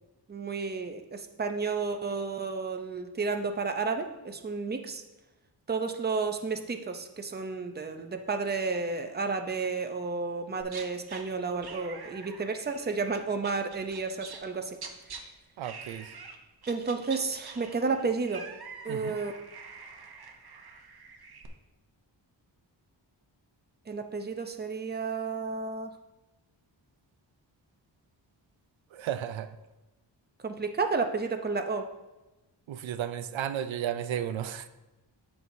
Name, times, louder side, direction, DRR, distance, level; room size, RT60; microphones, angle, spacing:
voice 1, 0.3-5.0 5.7-14.8 16.7-18.5 18.8-19.3 23.9-25.9 30.4-31.9, right 4 dB, 20° right, 6 dB, 0.6 m, -32 dB
sound 1, 10.6-11.2 11.6-15.2 15.6-16.4 16.6-21.5, right 5 dB, 55° right, 0.9 m, -45 dB
voice 2, 15.6-16.1 18.9-19.2 28.9-29.5 32.7-34.7, right 10 dB, 90° right, 11 dB, 0.5 m, -33 dB
12.5 x 4.7 x 2.7 m, 1.0 s
wide cardioid pair, 100°, 45 cm